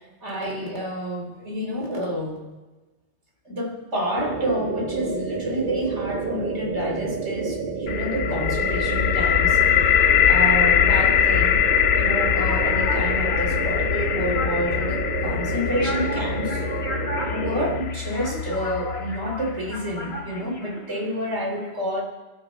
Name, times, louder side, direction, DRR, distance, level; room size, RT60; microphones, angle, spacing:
voice 1, 0.0-2.4 3.4-11.6 11.9-16.6 17.3-22.0, equal, 75° right, 1 dB, 3.3 m, -29 dB
sound 1, 4.2-17.8, right 4 dB, 50° right, 1.1 m, -29 dB
sound 2, 7.9-19.7, left 9 dB, 85° left, 1.0 m, -22 dB
sound 3, 12.2-21.3, left 1 dB, 60° left, 2.5 m, -35 dB
28.0 x 12.0 x 3.9 m, 1.2 s
omnidirectional pair, 1.2 m